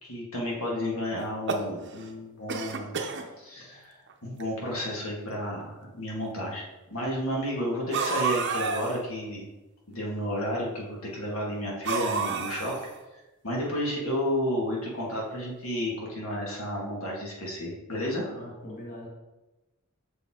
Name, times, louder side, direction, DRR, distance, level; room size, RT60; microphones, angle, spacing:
voice 1, 0.0-2.9 3.4-3.9 4.2-9.5 9.9-12.7 13.4-18.2, equal, 75° left, -3 dB, 1.8 m, -32 dB
sound 1, 1.2-2.1 2.5-3.3 4.1-4.2 4.4-4.5 5.4-5.5 7.9-9.0 11.8-13.0, right 5 dB, 55° right, 0.7 m, -30 dB
voice 2, 18.2-19.1, left 1 dB, 40° left, -4 dB, 1.4 m, -42 dB
6.6 x 5.3 x 3.7 m, 1.1 s
head